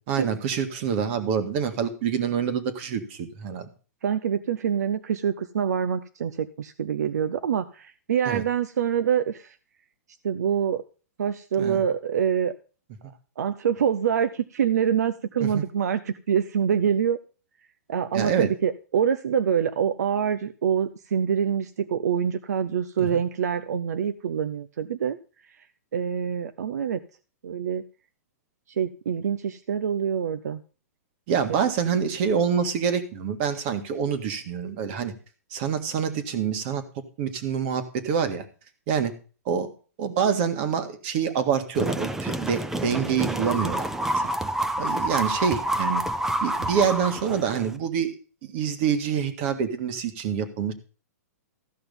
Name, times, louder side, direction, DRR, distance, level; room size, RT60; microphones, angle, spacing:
voice 1, 0.0-3.7 8.3-8.4 11.6-11.8 15.4-15.6 18.1-18.5 23.0-23.1 31.3-35.1 35.5-36.8 37.2-38.4 38.9-39.1 39.5-39.7 40.0-43.9 44.2-44.3 44.8-46.0 46.4-48.1 48.4-50.7, right 7 dB, 45° right, 9 dB, 1.8 m, -26 dB
voice 2, 4.0-9.6 10.2-10.8 11.2-12.5 13.4-17.2 17.9-25.2 25.9-27.0 27.4-27.8 28.7-30.6 31.5-31.6, right 8 dB, 80° right, 11 dB, 0.7 m, -25 dB
sound 1, 41.7-47.8, right 1 dB, 5° right, 0.6 m, -28 dB
14.0 x 5.9 x 5.4 m, 0.37 s
hypercardioid pair, 140°, 9 cm